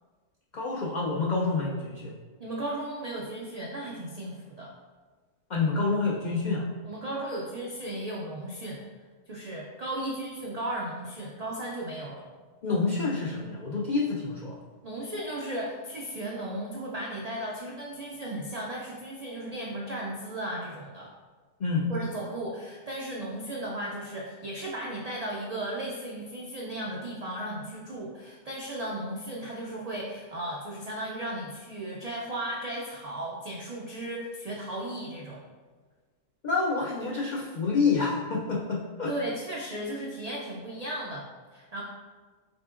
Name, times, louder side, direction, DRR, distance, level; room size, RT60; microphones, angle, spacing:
voice 1, 0.5-2.1 5.5-6.7 12.6-14.6 21.6-21.9 36.4-39.1, left 4 dB, 85° left, -3 dB, 0.4 m, -28 dB
voice 2, 2.4-4.7 6.8-8.8 9.3-12.3 14.8-21.1 21.9-35.4 39.1-41.8, right 1 dB, 90° right, -3 dB, 0.3 m, -35 dB
5.1 x 3.6 x 2.4 m, 1.4 s
omnidirectional pair, 1.4 m